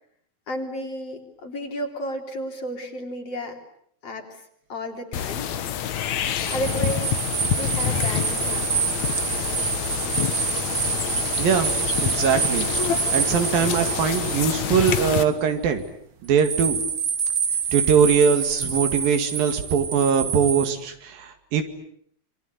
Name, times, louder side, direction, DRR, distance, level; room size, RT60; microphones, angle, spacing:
voice 1, 0.5-3.6 4.0-5.5 6.5-7.2 7.5-8.7, equal, 45° left, 3 dB, 4.3 m, -32 dB
sound 1, 5.1-15.2, left 9 dB, 60° left, 2.4 m, -27 dB
sound 2, 6.2-15.5 16.4-20.7, right 6 dB, 45° right, 1.2 m, -27 dB
voice 2, 11.4-12.7 13.1-15.8 16.2-16.8 17.7-21.6, right 7 dB, 80° right, 7 dB, 4.0 m, -21 dB
27.5 x 24.0 x 8.1 m, 0.68 s
omnidirectional pair, 4.0 m